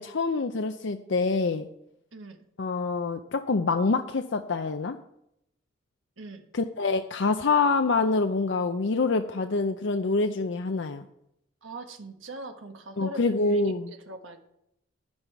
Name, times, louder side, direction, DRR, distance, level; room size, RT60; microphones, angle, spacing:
voice 1, 0.0-1.7 2.6-5.0 6.5-11.0 13.0-13.9, left 3 dB, 60° left, 7 dB, 0.5 m, -26 dB
voice 2, 6.2-6.5 11.6-13.6 13.9-14.4, right 2 dB, 70° right, 5 dB, 1.3 m, -41 dB
10.5 x 9.6 x 4.6 m, 0.78 s
head